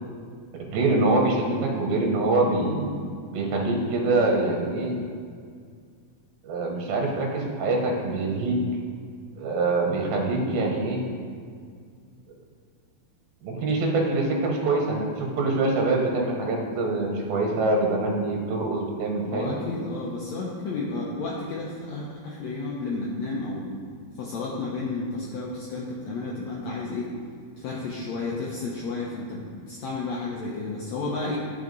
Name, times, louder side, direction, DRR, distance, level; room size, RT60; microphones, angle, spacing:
voice 1, 0.7-2.9 3.3-4.9 6.4-8.6 9.4-11.0 13.4-19.6, right 2 dB, 80° right, 1 dB, 2.8 m, -24 dB
voice 2, 19.3-23.7 24.2-27.1 27.6-31.4, left 3 dB, 85° left, -4 dB, 1.5 m, -32 dB
11.0 x 5.7 x 3.9 m, 2.1 s
omnidirectional pair, 4.2 m